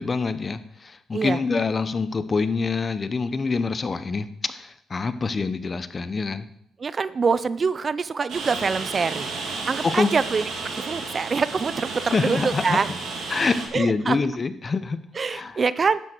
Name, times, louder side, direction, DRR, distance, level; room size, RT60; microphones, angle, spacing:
voice 1, 0.0-6.5 9.8-10.1 12.1-12.8 13.3-15.0 15.3-15.6, left 4 dB, 35° left, 13 dB, 0.8 m, -25 dB
voice 2, 6.8-9.3 9.7-12.9 13.7-14.2 15.2-16.0, right 5 dB, 40° right, 16 dB, 0.5 m, -25 dB
Rain, 8.3-13.7, right 4 dB, 70° right, 3.2 m, -32 dB
11.5 x 10.0 x 4.5 m, 0.71 s
cardioid pair, 90°, 0 cm